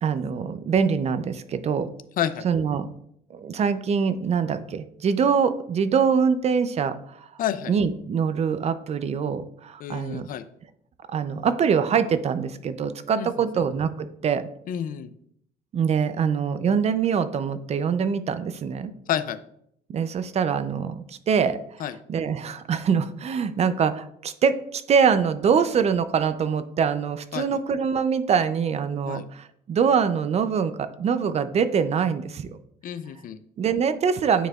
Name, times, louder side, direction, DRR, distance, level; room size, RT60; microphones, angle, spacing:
voice 1, 0.0-1.9 2.4-2.9 3.3-7.3 7.7-10.3 11.1-14.5 15.7-18.9 19.9-21.6 22.1-32.6 33.6-34.5, right 6 dB, 40° right, 12 dB, 0.5 m, -24 dB
voice 2, 7.4-7.7 9.8-10.4 13.2-13.7 14.7-15.1 19.1-19.4 21.8-22.0 27.3-27.4 29.1-29.2 32.8-33.4, left 10 dB, 55° left, 12 dB, 0.4 m, -29 dB
8.9 x 4.7 x 2.3 m, 0.70 s
cardioid pair, 110°, 17 cm